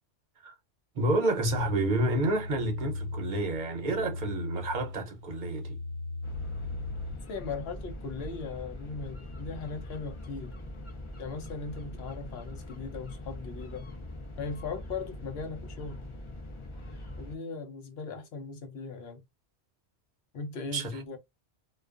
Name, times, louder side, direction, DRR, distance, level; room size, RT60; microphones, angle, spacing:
voice 1, 0.9-5.8 20.7-21.0, right 2 dB, 50° right, 0.7 m, -29 dB
sound 1, 1.4-7.2, left 3 dB, 90° left, 1.2 m, -38 dB
sound 2, 6.2-17.4, left 1 dB, 40° left, 0.5 m, -42 dB
voice 2, 7.3-10.5 11.2-13.9 14.4-16.1 17.2-19.2 20.3-21.2, left 4 dB, 70° left, 0.9 m, -38 dB
2.3 x 2.2 x 2.4 m
omnidirectional pair, 1.1 m